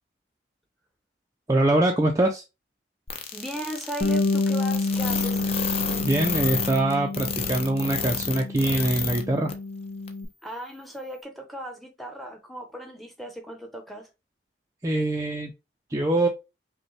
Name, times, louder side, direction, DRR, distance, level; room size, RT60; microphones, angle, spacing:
voice 1, 1.5-2.4 6.0-9.5 14.8-15.5 15.9-16.3, right 1 dB, 20° right, 0.4 m, -23 dB
sound 1, 3.1-9.2 9.5-9.6 10.1-10.2, left 6 dB, 35° left, 0.6 m, -30 dB
voice 2, 3.3-5.4 10.4-14.1, right 1 dB, ahead, 0.8 m, -36 dB
Bass guitar, 4.0-10.3, left 3 dB, 70° left, 0.9 m, -29 dB
5.2 x 2.2 x 3.1 m
head